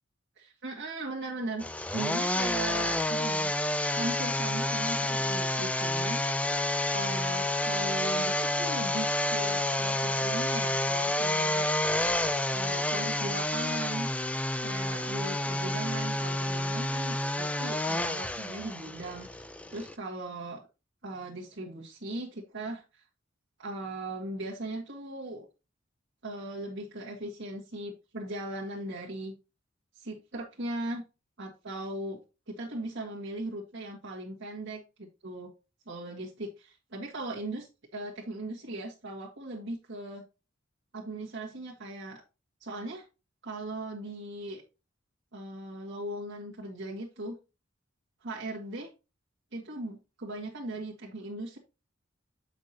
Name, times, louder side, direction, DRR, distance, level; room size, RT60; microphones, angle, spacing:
voice 1, 0.4-3.5 3.9-6.5 6.9-11.9 12.5-14.1 14.6-20.6 21.0-23.0 23.6-25.5 26.2-29.3 30.0-31.0 31.4-35.5 35.8-40.2 40.9-42.2 42.6-43.0 43.4-44.6 45.3-47.4 48.2-48.9 49.5-51.6, right 2 dB, 60° right, -4 dB, 1.7 m, -38 dB
sound 1, 1.6-19.9, left 1 dB, 5° left, 0.5 m, -29 dB
8.2 x 5.9 x 2.8 m, 0.28 s
head